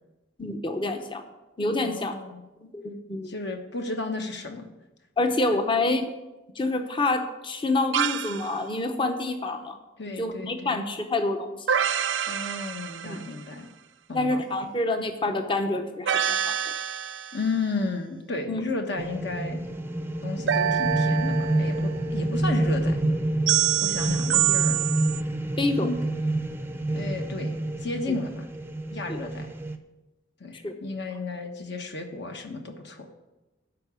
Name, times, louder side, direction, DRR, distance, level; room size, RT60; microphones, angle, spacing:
voice 1, 0.4-1.2 1.6-2.1 2.6-3.3 5.2-6.1 6.5-9.8 10.2-11.7 13.0-13.3 14.1-16.7 18.5-18.6 25.6-25.9 29.1-29.2 30.5-30.7, left 2 dB, 25° left, 6 dB, 0.8 m, -27 dB
voice 2, 1.8-2.4 3.2-4.7 10.0-10.8 12.3-13.7 14.1-14.4 17.3-19.6 20.2-23.0 23.8-24.8 25.8-26.0 26.9-27.5 27.8-28.4 28.9-29.5 30.4-33.1, left 3 dB, 60° left, 4 dB, 1.3 m, -33 dB
sound 1, 7.9-8.5 11.7-13.4 16.1-17.5 20.5-21.9 23.5-25.2, right 10 dB, 65° right, 0.5 m, -26 dB
sound 2, 19.0-29.8, right 1 dB, 10° right, 0.5 m, -28 dB
12.5 x 5.0 x 8.3 m, 1.1 s
head